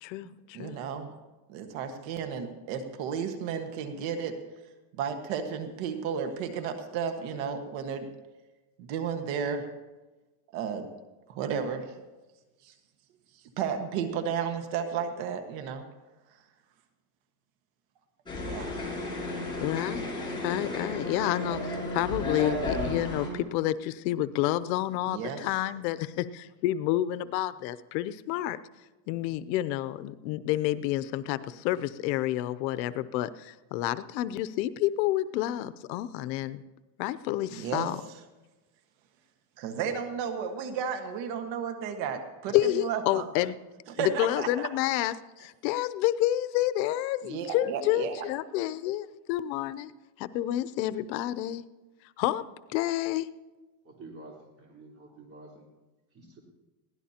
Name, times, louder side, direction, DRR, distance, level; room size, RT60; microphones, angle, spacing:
voice 1, 0.0-0.8 19.6-20.1 20.4-28.6 29.1-36.6 37.0-38.0 42.5-43.6 44.0-49.9 50.2-51.6 52.2-52.4 52.7-53.3, left 14 dB, 90° left, 15 dB, 0.8 m, -29 dB
voice 2, 0.5-1.1 1.5-4.3 5.0-8.0 8.8-9.7 10.5-10.9 11.3-11.9 12.6-12.7 13.6-15.8 18.4-18.8 25.1-25.4 37.5-37.9 39.6-43.2 43.9-44.7 47.2-48.2, right 7 dB, 65° right, 6 dB, 1.6 m, -33 dB
sound 1, 18.3-23.3, left 2 dB, 10° left, 6.3 m, -33 dB
voice 3, 53.8-55.7 56.1-56.4, right 2 dB, 25° right, -1 dB, 4.0 m, -49 dB
21.5 x 16.5 x 2.9 m, 1.2 s
cardioid pair, 140°, 49 cm